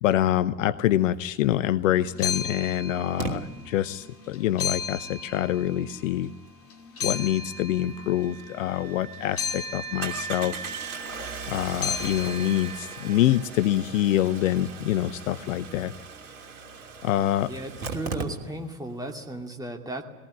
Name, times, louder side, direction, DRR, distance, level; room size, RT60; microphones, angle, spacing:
voice 1, 0.0-6.3 7.0-10.7 11.5-15.9 17.0-17.5, left 13 dB, 55° left, 15 dB, 0.8 m, -25 dB
Engine starting, 1.7-1.8 3.2-3.3 8.4-8.5 8.8-8.9 10.0-18.8 19.1-19.2 19.4-19.5, right 5 dB, 65° right, 3.1 m, -38 dB
sound 1, 2.0-3.7 4.0-6.3 6.7-13.2, left 6 dB, 30° left, 2.7 m, -35 dB
sound 2, 7.0-13.8, right 7 dB, 80° right, 4.0 m, -42 dB
voice 2, 17.5-20.0, right 1 dB, 10° right, 3 dB, 2.5 m, -35 dB
20.0 x 18.5 x 9.6 m, 1.2 s
figure-of-eight pair, 80°, 47 cm